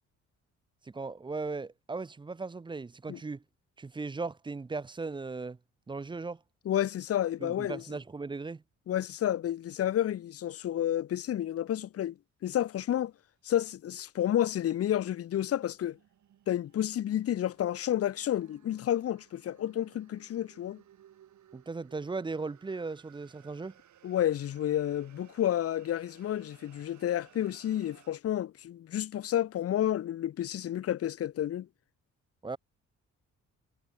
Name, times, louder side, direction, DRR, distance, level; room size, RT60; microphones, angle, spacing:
voice 1, 0.8-3.4 3.8-5.6 5.9-6.4 7.4-8.6 21.5-23.8 32.4-32.6, right 3 dB, 15° right, 0.6 m, -37 dB
voice 2, 6.7-7.8 8.9-12.1 12.4-13.1 13.4-16.0 16.5-20.8 24.0-31.7, left 11 dB, 50° left, 0.7 m, -30 dB
sound 1, 15.1-28.1, right 11 dB, 70° right, 7.6 m, -61 dB
cardioid pair, 90°, 30 cm